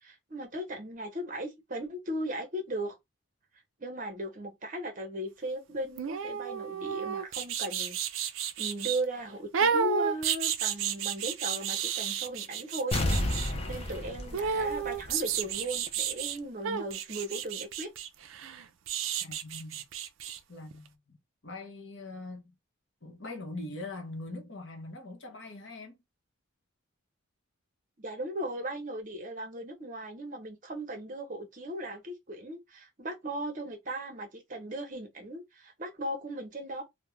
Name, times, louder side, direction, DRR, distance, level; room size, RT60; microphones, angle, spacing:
voice 1, 0.0-3.0 3.8-8.3 8.6-13.0 13.7-17.9 28.0-36.8, right 1 dB, 40° right, 0.7 m, -37 dB
sound 1, 6.0-9.0 9.5-13.5 14.3-16.4 16.6-20.4 20.7-20.8, right 7 dB, 70° right, 0.4 m, -32 dB
sound 2, 12.9-15.5 15.9-16.0, left 1 dB, 30° left, 0.4 m, -31 dB
voice 2, 19.2-19.9 20.5-21.2 21.4-22.5 23.0-26.0, left 2 dB, 55° left, 0.8 m, -42 dB
2.4 x 2.1 x 3.0 m
head